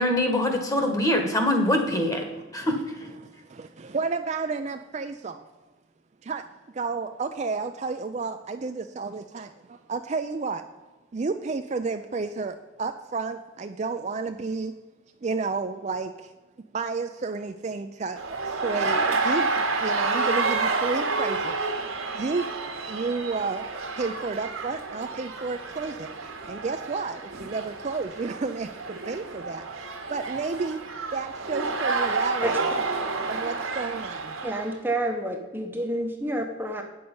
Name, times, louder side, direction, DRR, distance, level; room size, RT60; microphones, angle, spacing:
voice 1, 0.0-2.2 2.5-2.7, left 1 dB, 15° left, 4 dB, 1.3 m, -23 dB
voice 2, 2.3-2.8 3.2-5.4 6.2-6.4 6.7-10.6 11.1-14.7 15.2-16.3 16.7-21.7 22.1-22.5 22.9-23.7 23.9-26.1 26.5-29.8 30.1-30.8 31.1-32.7 33.3-34.4, right 4 dB, 35° right, 7 dB, 0.4 m, -31 dB
sound 1, 18.2-34.7, right 3 dB, 90° right, 1.4 m, -29 dB
voice 3, 34.4-36.8, right 1 dB, 10° right, 3 dB, 0.8 m, -29 dB
9.0 x 7.0 x 5.4 m, 1.2 s
head